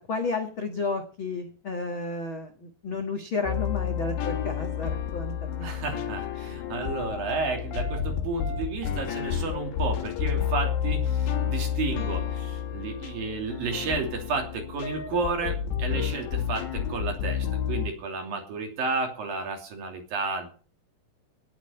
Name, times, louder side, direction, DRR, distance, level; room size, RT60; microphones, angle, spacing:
voice 1, 0.1-5.7, left 3 dB, 55° left, 5 dB, 1.4 m, -32 dB
sound 1, 3.4-17.9, left 8 dB, 85° left, 3.9 m, -30 dB
voice 2, 5.6-20.5, right 4 dB, 60° right, 3 dB, 4.3 m, -32 dB
18.0 x 7.5 x 6.8 m, 0.41 s
omnidirectional pair, 4.9 m